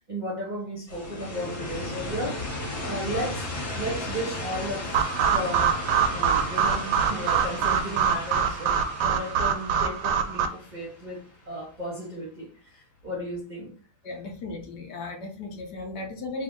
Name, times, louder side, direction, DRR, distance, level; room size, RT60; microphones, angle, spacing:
voice 1, 0.1-2.4 2.8-4.9 5.3-5.7 6.1-13.7, equal, 35° right, 0.7 m, -34 dB
sound 1, 0.9-11.6, left 2 dB, 35° left, 1.2 m, -35 dB
sound 2, 4.9-10.5, right 7 dB, 75° right, 1.0 m, -24 dB
voice 2, 14.0-16.4, left 3 dB, 65° left, 1.3 m, -36 dB
3.5 x 2.6 x 3.6 m
omnidirectional pair, 2.1 m